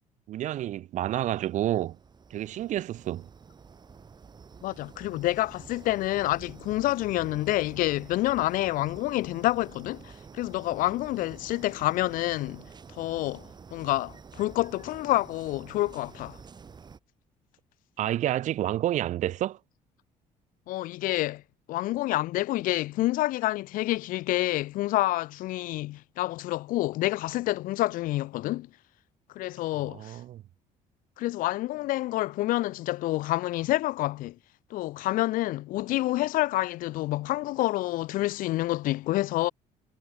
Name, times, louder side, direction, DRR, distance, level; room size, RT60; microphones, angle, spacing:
voice 1, 0.3-2.0 2.3-3.3 18.0-19.6 29.8-30.4, right 13 dB, 60° right, 0.8 m, -29 dB
sound 1, 1.1-17.0, right 5 dB, 30° right, 7.1 m, -49 dB
voice 2, 4.6-16.4 20.7-21.4 21.7-28.7 29.3-30.2 31.2-34.4 34.7-39.5, left 17 dB, 75° left, 0.6 m, -28 dB
cardioid pair, 125°, 14 cm